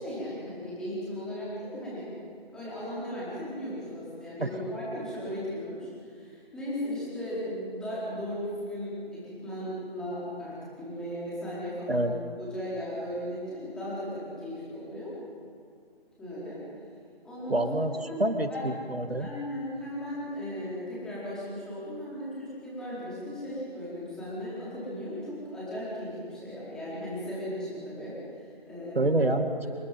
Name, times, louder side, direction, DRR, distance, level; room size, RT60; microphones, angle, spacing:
voice 1, 0.0-2.1 2.5-12.1 12.4-15.1 16.2-16.6 17.2-17.7 18.0-18.7 19.2-29.2 29.6-29.7, equal, ahead, -9 dB, 4.5 m, -36 dB
voice 2, 17.5-19.3 29.0-29.7, right 1 dB, 70° right, 7 dB, 2.2 m, -27 dB
28.0 x 21.0 x 5.4 m, 2.2 s
figure-of-eight pair, 160°, 31 cm